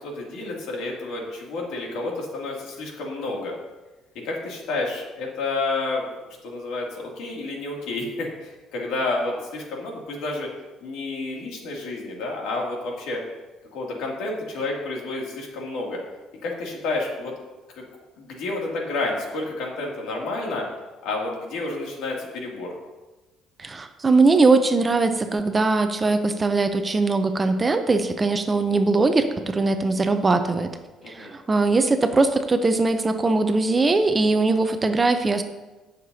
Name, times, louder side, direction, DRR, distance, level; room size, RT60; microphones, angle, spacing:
voice 1, 0.0-3.5 4.2-6.0 6.4-10.5 10.8-13.2 13.7-16.0 16.4-17.3 17.8-17.9 18.2-20.6 21.0-22.7 31.0-31.3, left 2 dB, 75° left, -1 dB, 2.5 m, -30 dB
voice 2, 23.6-30.7 31.1-35.4, right 3 dB, 20° right, 8 dB, 0.6 m, -21 dB
17.0 x 6.7 x 2.7 m, 1.1 s
cardioid pair, 140°, 0 cm